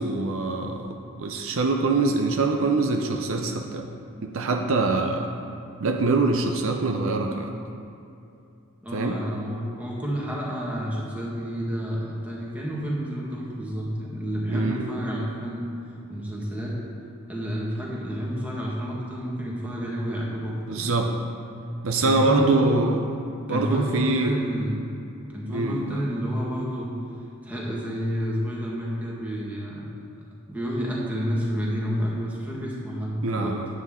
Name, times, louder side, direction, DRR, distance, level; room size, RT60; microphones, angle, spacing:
voice 1, 0.0-3.8 4.2-5.3 5.8-7.5 8.9-9.2 14.5-14.9 20.7-21.1 21.8-23.0 23.5-24.3 25.5-26.0 33.2-33.7, right 3 dB, 65° right, 4 dB, 0.6 m, -24 dB
voice 2, 8.8-15.7 16.1-16.8 17.3-20.9 22.0-22.7 23.5-24.8 25.3-26.9 27.4-29.9 30.5-33.6, equal, 5° right, -5 dB, 1.5 m, -29 dB
9.6 x 8.2 x 3.7 m, 2.6 s
head